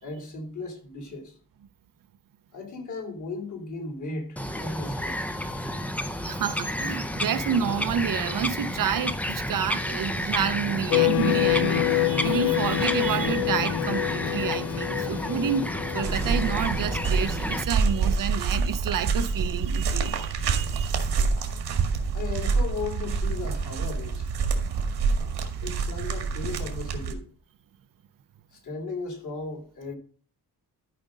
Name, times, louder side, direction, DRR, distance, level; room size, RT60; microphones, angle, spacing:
voice 1, 0.0-1.3 2.5-5.2 22.1-24.3 25.6-27.2 28.5-30.0, left 3 dB, 50° left, 3.0 m, -36 dB
Bird vocalization bird call bird song, 4.4-17.6, equal, 5° left, 0.5 m, -31 dB
voice 2, 6.2-15.6 15.9-20.9, right 8 dB, 55° right, 0.7 m, -29 dB
sound 1, 10.9-17.6, left 14 dB, 85° left, 0.5 m, -27 dB
sound 2, 16.0-27.1, right 5 dB, 90° right, 1.9 m, -27 dB
13.0 x 5.1 x 5.2 m
wide cardioid pair, 170°, 38 cm